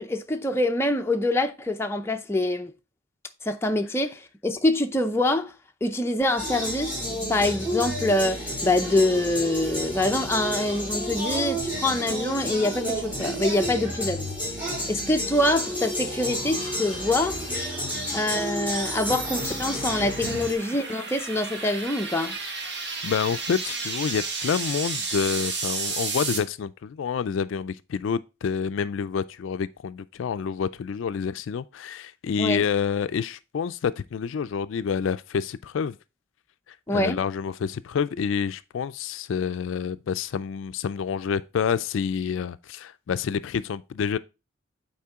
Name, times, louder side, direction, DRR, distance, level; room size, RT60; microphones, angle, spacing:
voice 1, 0.0-2.7 3.4-5.5 5.8-14.2 14.9-17.4 18.1-22.4 32.4-32.6 36.9-37.2, left 1 dB, 10° left, 0.6 m, -25 dB
sound 1, 6.4-20.5, equal, 10° right, 3.0 m, -31 dB
sound 2, 15.1-26.4, right 4 dB, 55° right, 1.4 m, -34 dB
voice 2, 23.0-36.0 36.7-44.2, left 6 dB, 70° left, 0.3 m, -28 dB
8.5 x 4.4 x 3.5 m
head